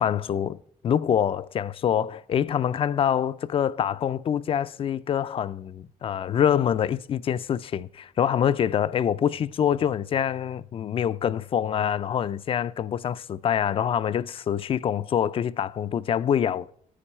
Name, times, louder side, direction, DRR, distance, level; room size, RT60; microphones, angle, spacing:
voice 1, 0.0-16.7, left 9 dB, 40° left, 0.4 m, -25 dB
10.0 x 9.1 x 4.3 m
cardioid pair, 140°, 15 cm